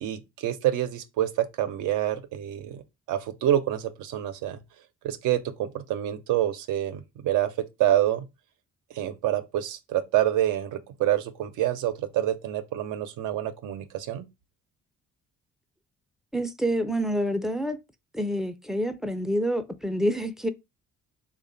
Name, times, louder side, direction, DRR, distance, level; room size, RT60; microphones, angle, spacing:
voice 1, 0.0-2.8 3.1-4.6 5.0-7.5 7.8-8.3 8.9-14.3, right 12 dB, 85° right, 0.6 m, -27 dB
voice 2, 16.3-17.8 18.1-20.5, equal, ahead, 0.4 m, -27 dB
3.3 x 2.3 x 3.8 m
cardioid pair, 90°, 30 cm